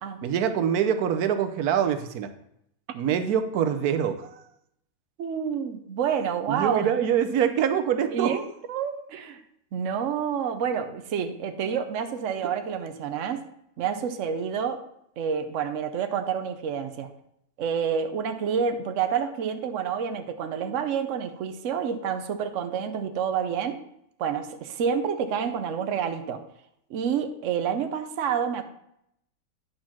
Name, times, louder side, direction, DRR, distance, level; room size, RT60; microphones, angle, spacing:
voice 1, 0.2-2.3 2.9-4.4 6.5-8.4, right 8 dB, 90° right, 9 dB, 1.2 m, -25 dB
voice 2, 5.2-6.9 8.1-9.4 9.7-13.4 13.8-14.8 15.2-17.1 17.6-23.8 24.2-26.4 26.9-28.6, right 7 dB, 65° right, 8 dB, 1.1 m, -28 dB
9.5 x 4.4 x 5.9 m, 0.76 s
omnidirectional pair, 1.5 m